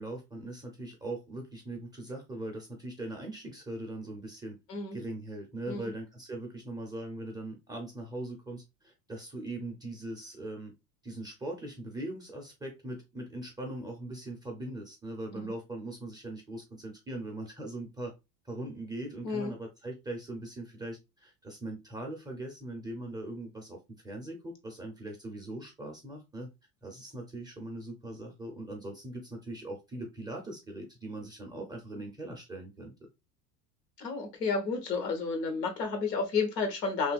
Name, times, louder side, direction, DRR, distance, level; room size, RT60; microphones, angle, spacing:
voice 1, 0.0-4.6 4.9-10.7 11.0-18.1 18.4-23.8 24.0-26.5 26.8-32.9, right 1 dB, 10° right, 0.4 m, -40 dB
voice 2, 34.0-37.1, left 4 dB, 80° left, 1.0 m, -31 dB
2.8 x 2.5 x 2.2 m
figure-of-eight pair, 80°, 48 cm